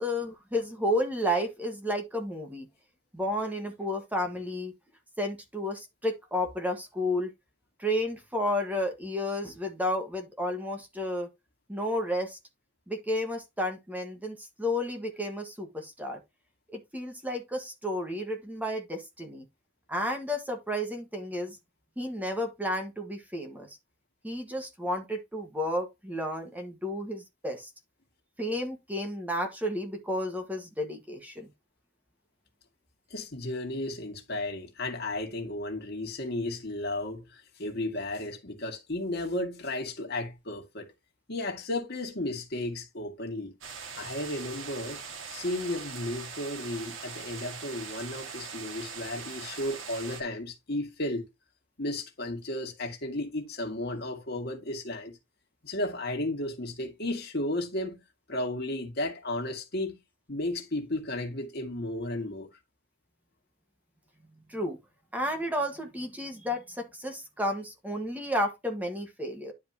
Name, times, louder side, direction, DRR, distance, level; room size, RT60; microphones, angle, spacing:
voice 1, 0.0-2.7 3.1-4.7 5.2-7.3 7.8-11.3 11.7-12.4 12.9-16.2 16.7-19.4 19.9-21.6 22.0-23.8 24.2-27.7 28.4-31.5 64.5-64.8 65.1-69.5, left 1 dB, 10° right, 1.5 m, -32 dB
voice 2, 33.1-40.9 41.3-43.5 44.0-45.0 45.3-51.3 51.8-55.2 55.6-58.0 58.3-59.9 60.3-62.5, left 1 dB, 55° left, 2.1 m, -34 dB
sound 1, 43.6-50.2, right 6 dB, 85° right, 2.0 m, -41 dB
10.5 x 5.1 x 2.9 m
head